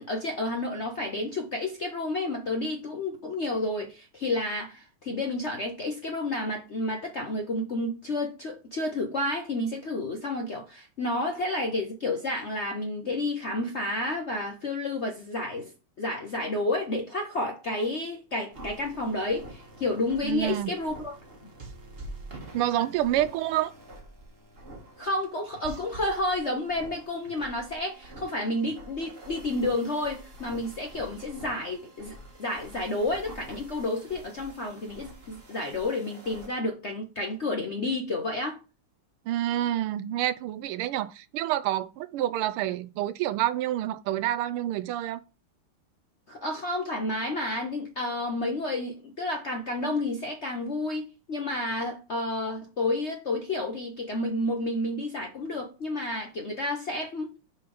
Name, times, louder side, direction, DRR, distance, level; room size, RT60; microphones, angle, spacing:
voice 1, 0.0-15.7 16.0-21.1 25.0-38.6 46.3-57.3, left 2 dB, 50° left, 0.8 m, -30 dB
sound 1, 18.5-36.5, right 1 dB, 30° right, 1.4 m, -46 dB
voice 2, 20.2-20.7 22.5-23.7 39.3-45.2, right 13 dB, 80° right, 1.4 m, -28 dB
6.7 x 3.6 x 5.3 m
omnidirectional pair, 2.4 m